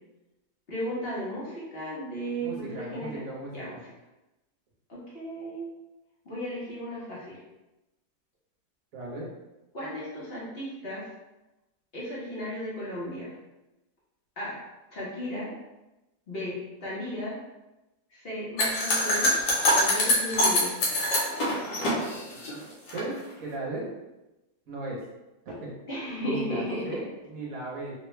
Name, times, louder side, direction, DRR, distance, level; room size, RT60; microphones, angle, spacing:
voice 1, 0.7-3.2 3.5-3.7 4.9-5.7 6.2-7.4 9.7-11.1 11.9-13.3 14.4-14.6 14.9-15.5 16.3-17.4 18.1-19.4 19.7-20.7 25.9-26.9, equal, 45° left, -7 dB, 0.8 m, -35 dB
voice 2, 2.4-3.8 8.9-9.3 22.9-23.1 23.4-23.9 24.7-25.0 25.4-25.7 26.2-27.9, right 2 dB, 55° right, -4 dB, 1.2 m, -36 dB
sound 1, 18.6-23.0, left 1 dB, 70° left, 1.3 m, -24 dB
3.4 x 2.2 x 3.1 m, 1.0 s
omnidirectional pair, 2.0 m